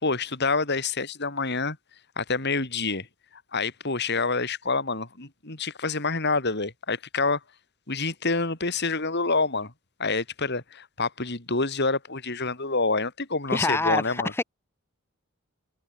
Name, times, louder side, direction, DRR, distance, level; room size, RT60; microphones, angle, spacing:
voice 1, 0.0-1.8 2.2-3.1 3.5-7.4 7.9-9.7 10.0-14.3, left 3 dB, 50° left, 3.9 m, -27 dB
voice 2, 13.5-14.4, left 2 dB, 10° left, 0.6 m, -25 dB
head